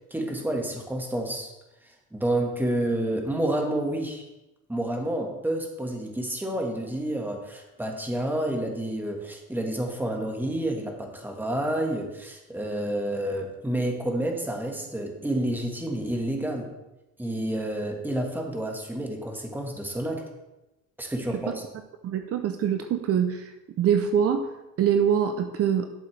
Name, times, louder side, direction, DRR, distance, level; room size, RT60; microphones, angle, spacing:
voice 1, 0.1-1.5 2.1-4.2 4.7-16.7 17.2-20.2 21.0-21.6, right 1 dB, 5° right, 1 dB, 1.7 m, -29 dB
voice 2, 22.0-25.9, right 8 dB, 50° right, 7 dB, 0.7 m, -24 dB
11.0 x 7.8 x 3.4 m, 0.99 s
cardioid pair, 120°, 30 cm